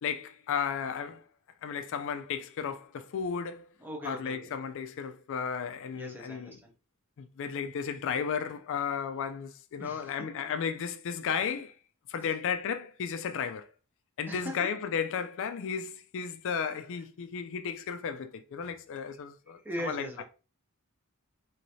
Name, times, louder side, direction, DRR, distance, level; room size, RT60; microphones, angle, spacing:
voice 1, 0.0-1.2 1.6-3.7 4.0-6.6 7.2-11.7 12.1-13.7 14.2-20.2, left 7 dB, 65° left, 0.4 m, -34 dB
voice 2, 3.8-4.6 5.9-6.7 9.8-10.3 12.2-12.3 14.3-14.7 19.6-20.2, equal, 10° right, 0.6 m, -40 dB
3.1 x 3.1 x 2.6 m
head